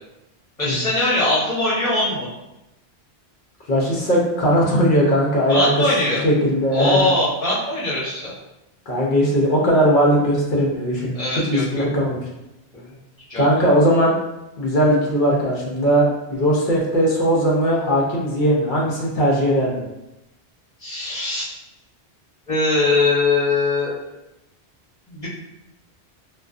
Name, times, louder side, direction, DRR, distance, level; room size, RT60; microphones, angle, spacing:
voice 1, 0.6-2.3 5.5-6.2 6.7-8.3 11.1-11.8 12.7-13.0 13.3-13.4 20.8-21.5 22.5-23.9 25.1-25.3, left 2 dB, 35° left, -9 dB, 1.0 m, -21 dB
voice 2, 3.7-7.1 8.9-11.1 11.5-12.2 13.4-14.1 14.6-16.0 16.3-19.8, equal, 60° left, -3 dB, 0.7 m, -19 dB
2.4 x 2.3 x 2.3 m, 0.94 s
omnidirectional pair, 1.1 m